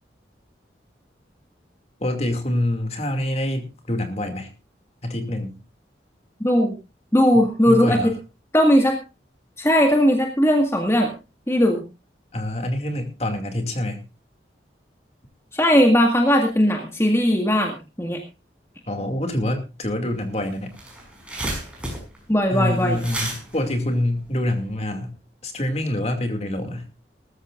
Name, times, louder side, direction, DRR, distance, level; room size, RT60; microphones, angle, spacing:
voice 1, 2.0-4.5 5.0-5.5 7.6-8.1 12.3-14.0 18.9-20.7 22.5-25.1 25.4-26.9, left 1 dB, 35° left, 5 dB, 2.5 m, -26 dB
voice 2, 6.4-6.8 7.1-8.1 8.5-9.0 9.6-11.1 11.5-11.8 15.5-18.2 22.3-23.0, equal, 15° left, 2 dB, 1.9 m, -18 dB
sound 1, 20.2-20.3 20.5-24.8, right 1 dB, 5° right, 5.7 m, -33 dB
19.5 x 14.0 x 2.5 m, 0.29 s
head